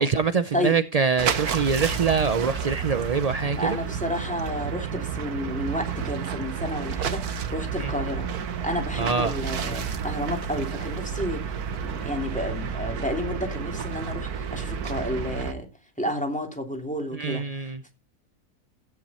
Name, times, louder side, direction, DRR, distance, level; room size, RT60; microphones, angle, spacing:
voice 1, 0.0-3.8 7.8-7.9 9.0-9.4 17.1-17.9, right 5 dB, 50° right, 0.4 m, -24 dB
sound 1, 1.2-15.5, right 7 dB, 80° right, 1.7 m, -31 dB
voice 2, 3.6-8.2 8.6-11.4 11.8-15.7 16.0-17.9, equal, 5° left, 3.0 m, -31 dB
15.0 x 9.8 x 4.3 m
omnidirectional pair, 1.6 m